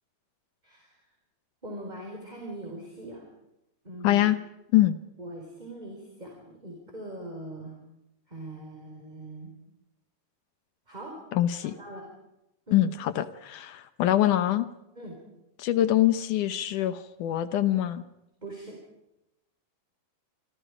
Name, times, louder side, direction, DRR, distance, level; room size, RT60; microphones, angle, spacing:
voice 1, 0.6-0.9 1.6-3.2 3.8-4.2 5.2-7.7 8.3-9.5 10.9-11.2 11.6-12.0 12.7-12.8 15.0-15.2 18.4-18.8, right 1 dB, 10° right, 0 dB, 4.7 m, -41 dB
voice 2, 4.0-4.4 4.7-5.0 11.3-11.7 12.7-14.7 15.6-18.0, left 13 dB, 70° left, 12 dB, 2.0 m, -24 dB
27.5 x 26.5 x 5.0 m, 0.88 s
omnidirectional pair, 4.5 m